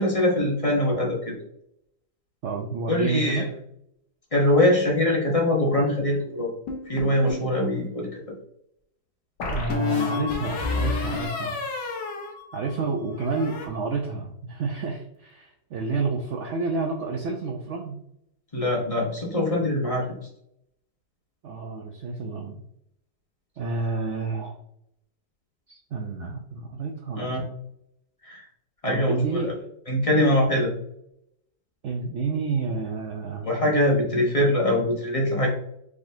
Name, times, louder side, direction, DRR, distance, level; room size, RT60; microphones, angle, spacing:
voice 1, 0.0-1.3 2.9-3.5 4.3-6.5 6.9-8.2 18.5-20.0 27.2-27.4 28.2-28.4 28.8-29.5 29.9-30.7 33.4-35.5, left 1 dB, 25° left, -2 dB, 1.0 m, -23 dB
voice 2, 2.4-3.5 9.5-12.0 12.5-18.0 21.4-22.6 23.6-24.6 25.7-27.3 28.9-29.5 31.8-33.5, right 4 dB, 75° right, 1 dB, 0.6 m, -29 dB
sound 1, 6.7-7.5 9.4-12.9 13.2-13.7, left 4 dB, 80° left, 1.5 m, -30 dB
5.0 x 3.7 x 2.6 m, 0.75 s
omnidirectional pair, 1.9 m